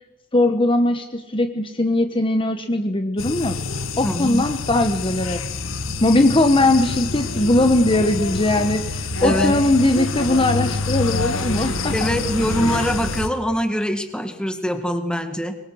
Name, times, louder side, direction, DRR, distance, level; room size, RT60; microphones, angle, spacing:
voice 1, 0.3-3.6 4.0-5.4 6.0-11.9, left 2 dB, 25° left, 7 dB, 1.3 m, -19 dB
sound 1, 3.2-13.3, left 3 dB, 75° left, 1.8 m, -26 dB
voice 2, 4.0-4.5 9.2-9.5 11.6-15.6, equal, 5° left, 7 dB, 1.9 m, -24 dB
24.5 x 22.0 x 6.4 m, 1.1 s
head